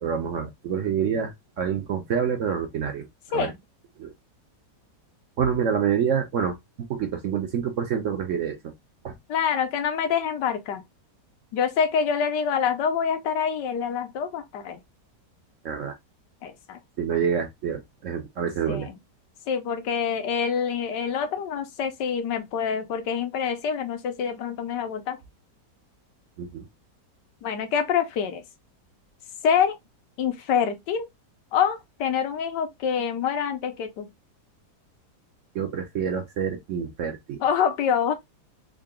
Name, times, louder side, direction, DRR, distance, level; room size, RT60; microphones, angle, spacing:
voice 1, 0.0-3.5 4.0-4.1 5.4-6.6 6.9-8.6 9.0-9.1 15.6-16.0 17.0-18.9 26.4-26.7 35.5-37.4, right 7 dB, 65° right, 0.8 m, -27 dB
voice 2, 9.3-10.8 11.5-14.8 16.4-16.8 18.7-18.9 19.5-25.2 27.4-28.4 29.4-29.8 30.2-31.1 31.5-34.1 37.4-38.1, left 7 dB, 85° left, 1.4 m, -26 dB
3.7 x 2.3 x 3.5 m
omnidirectional pair, 1.8 m